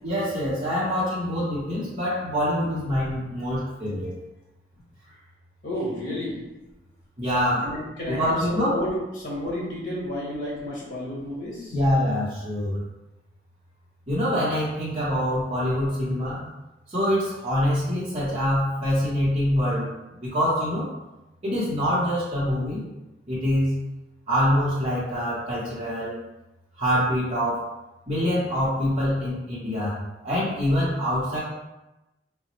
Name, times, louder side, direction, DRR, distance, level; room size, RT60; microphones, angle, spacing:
voice 1, 0.0-4.1 7.2-7.7 8.1-8.7 11.7-12.8 14.1-16.4 16.9-19.9 20.2-20.9 21.4-22.8 23.3-23.8 24.3-26.1 26.8-27.6 28.1-30.0 30.2-31.4, equal, 30° right, -10 dB, 0.8 m, -25 dB
voice 2, 5.6-6.4 7.6-11.8, left 1 dB, 45° left, -6 dB, 1.4 m, -31 dB
3.9 x 2.0 x 3.0 m, 1.0 s
head